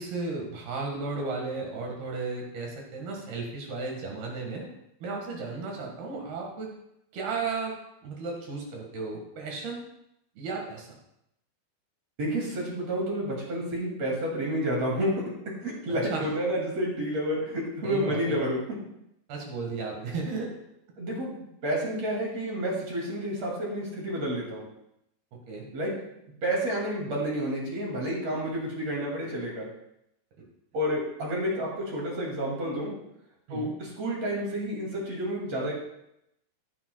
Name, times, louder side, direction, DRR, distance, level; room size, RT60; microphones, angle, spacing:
voice 1, 0.0-4.7 5.0-6.7 7.1-9.8 10.4-11.0 16.1-16.3 17.8-18.4 19.3-20.5 25.3-25.7 33.5-33.7, right 3 dB, 65° right, 0 dB, 3.5 m, -34 dB
voice 2, 12.2-15.3 15.6-18.8 21.0-24.7 25.7-25.9 26.4-29.7 30.7-32.9 33.5-35.7, equal, 40° right, -3 dB, 3.0 m, -30 dB
15.5 x 10.0 x 2.3 m, 0.79 s
omnidirectional pair, 5.0 m